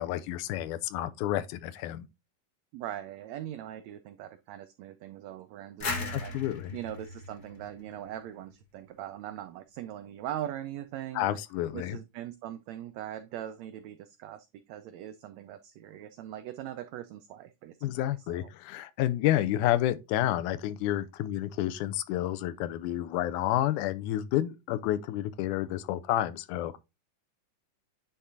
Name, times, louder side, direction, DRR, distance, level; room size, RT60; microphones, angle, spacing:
voice 1, 0.0-2.1 6.1-6.8 11.2-12.0 17.8-26.8, left 13 dB, 80° left, 2.0 m, -30 dB
voice 2, 2.7-6.3 6.7-11.4 11.7-18.5, right 12 dB, 85° right, 1.5 m, -41 dB
sound 1, 5.8-8.5, left 3 dB, 45° left, 1.3 m, -37 dB
9.9 x 3.7 x 2.7 m
omnidirectional pair, 3.7 m